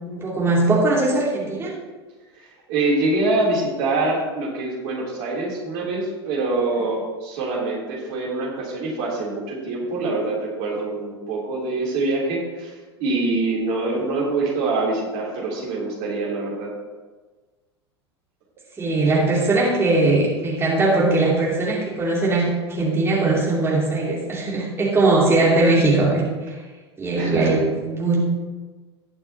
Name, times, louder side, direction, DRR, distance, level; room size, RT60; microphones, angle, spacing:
voice 1, 0.1-1.7 18.8-26.5 27.0-28.2, right 2 dB, 20° right, -5 dB, 3.0 m, -20 dB
voice 2, 2.4-16.7 27.1-27.5, right 2 dB, 50° right, -4 dB, 3.6 m, -25 dB
19.0 x 6.6 x 3.0 m, 1.3 s
figure-of-eight pair, 85°, 14 cm